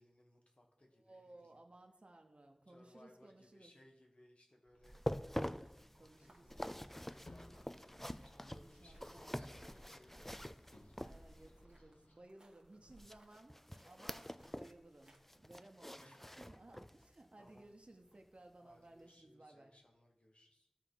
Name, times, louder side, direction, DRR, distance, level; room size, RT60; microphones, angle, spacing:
voice 1, 0.0-1.6 2.7-5.0 5.9-8.0 8.3-10.4 10.8-11.0 12.7-13.1 16.0-16.4 17.4-17.6 18.6-20.7, left 1 dB, 65° left, 0 dB, 1.5 m, -66 dB
voice 2, 0.9-3.7 6.0-6.5 8.4-9.4 11.0-13.6 13.8-19.7, right 2 dB, 60° right, 3 dB, 0.9 m, -60 dB
sound 1, 4.7-15.2, right 1 dB, 35° right, 1.5 m, -63 dB
sound 2, 4.8-11.6 13.0-14.8 15.1-17.1 17.5-17.6 18.2-18.3, equal, 10° left, 0.3 m, -46 dB
sound 3, 7.0-12.2, left 1 dB, 85° left, 1.1 m, -63 dB
13.0 x 4.6 x 3.9 m, 0.88 s
wide cardioid pair, 45°, 2 cm